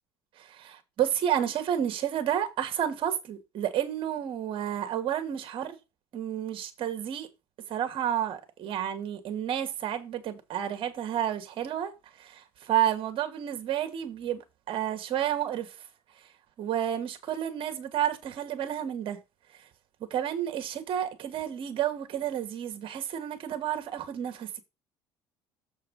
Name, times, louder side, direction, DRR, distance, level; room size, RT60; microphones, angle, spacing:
voice 1, 0.4-5.8 6.1-7.3 7.7-14.4 14.7-15.8 16.6-19.2 20.1-24.6, right 10 dB, 50° right, 1.9 m, -31 dB
7.4 x 4.6 x 5.6 m
supercardioid pair, 100°, 11 cm